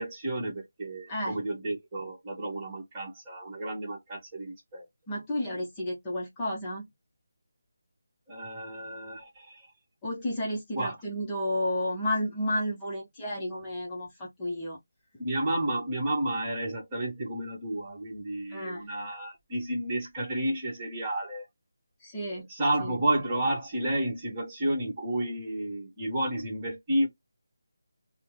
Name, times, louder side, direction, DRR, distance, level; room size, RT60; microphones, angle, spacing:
voice 1, 0.0-4.8 8.3-9.7 10.7-11.0 15.2-21.5 22.3-27.1, right 1 dB, 20° right, 1.2 m, -31 dB
voice 2, 5.1-6.9 10.0-14.8 18.5-18.9 22.0-22.5 22.8-22.9, left 1 dB, 15° left, 0.8 m, -32 dB
3.3 x 2.1 x 3.0 m
figure-of-eight pair, 170°, 0 cm